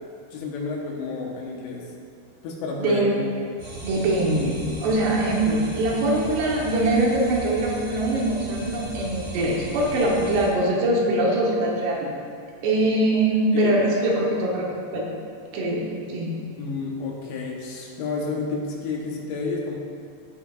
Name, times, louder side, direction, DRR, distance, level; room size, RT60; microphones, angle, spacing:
voice 1, 0.3-1.9 2.4-3.3 13.5-13.8 16.6-19.8, left 3 dB, 85° left, -2 dB, 3.3 m, -30 dB
voice 2, 2.8-3.1 3.8-12.1 12.6-15.1 15.5-15.8 16.1-16.3, right 1 dB, 80° right, -3 dB, 3.3 m, -22 dB
sound 1, 3.6-10.5, right 2 dB, 50° right, 1.2 m, -37 dB
15.5 x 5.7 x 2.5 m, 2.4 s
omnidirectional pair, 4.8 m